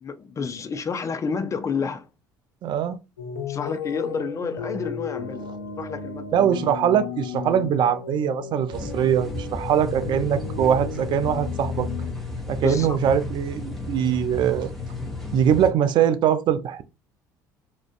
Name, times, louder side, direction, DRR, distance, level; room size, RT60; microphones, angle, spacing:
voice 1, 0.0-2.1 3.5-5.5 5.8-6.3 12.6-13.0, left 5 dB, 30° left, 0.4 m, -30 dB
voice 2, 2.6-3.0 6.3-11.9 12.5-14.7 15.3-16.8, right 9 dB, 50° right, 0.4 m, -22 dB
sound 1, 3.2-12.1, left 5 dB, 90° left, 0.5 m, -34 dB
sound 2, 8.7-15.7, left 2 dB, ahead, 0.8 m, -33 dB
2.4 x 2.1 x 2.5 m
hypercardioid pair, 65°, 10 cm